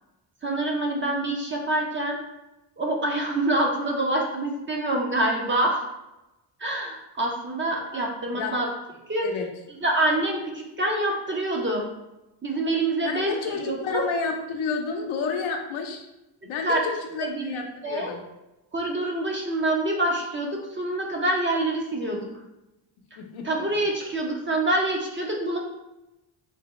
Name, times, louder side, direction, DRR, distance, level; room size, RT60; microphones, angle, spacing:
voice 1, 0.4-2.2 2.8-5.8 6.6-8.7 9.1-9.3 9.8-11.8 12.4-14.0 16.6-16.8 17.2-18.1 18.7-22.3 23.4-25.6, right 1 dB, 25° right, 0 dB, 0.5 m, -26 dB
voice 2, 13.0-16.0 16.4-18.2 23.2-23.5, left 5 dB, 75° left, 3 dB, 0.7 m, -30 dB
3.4 x 2.1 x 3.0 m, 0.97 s
cardioid pair, 105°, 49 cm